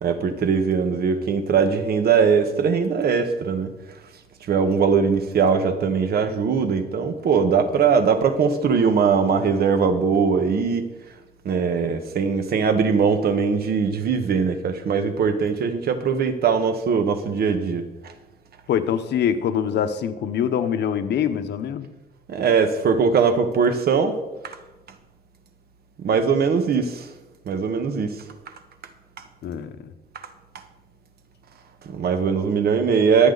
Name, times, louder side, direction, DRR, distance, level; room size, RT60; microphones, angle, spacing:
voice 1, 0.0-3.7 4.5-10.9 11.4-17.9 22.3-24.2 24.4-24.6 26.0-27.0 27.5-28.1 31.8-33.3, right 6 dB, 65° right, 8 dB, 1.5 m, -21 dB
voice 2, 18.7-21.9 29.4-29.9, left 8 dB, 85° left, 9 dB, 1.1 m, -24 dB
24.0 x 8.6 x 4.1 m, 1.1 s
cardioid pair, 150°, 17 cm